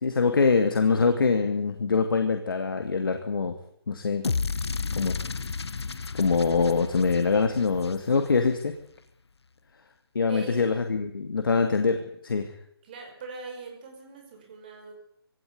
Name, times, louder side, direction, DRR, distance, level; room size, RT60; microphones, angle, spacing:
voice 1, 0.0-3.5 3.9-4.2 4.9-5.1 6.1-8.7 10.1-12.5, left 4 dB, 55° left, 6 dB, 2.5 m, -24 dB
sound 1, 4.2-8.5, left 4 dB, 85° left, 1.2 m, -32 dB
voice 2, 10.2-10.7 12.8-14.9, right 4 dB, 20° right, 2 dB, 5.7 m, -41 dB
22.5 x 17.5 x 9.7 m, 0.68 s
hypercardioid pair, 175°, 13 cm